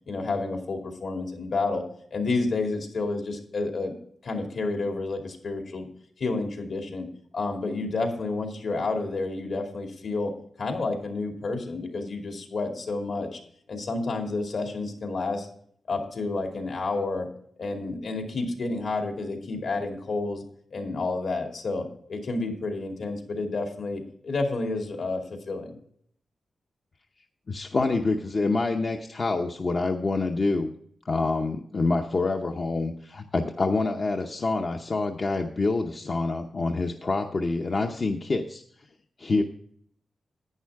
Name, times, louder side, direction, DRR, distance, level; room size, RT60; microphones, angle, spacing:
voice 1, 0.1-1.8 2.1-3.9 4.2-5.9 6.2-7.1 7.3-10.3 10.6-13.4 13.7-15.5 15.9-17.3 17.6-20.4 20.7-25.8, left 3 dB, 70° left, 3 dB, 2.5 m, -30 dB
voice 2, 27.5-30.7 31.0-38.6 39.2-39.4, left 3 dB, 40° left, 3 dB, 0.7 m, -26 dB
11.0 x 9.4 x 3.5 m, 0.63 s
wide cardioid pair, 115°, 0 cm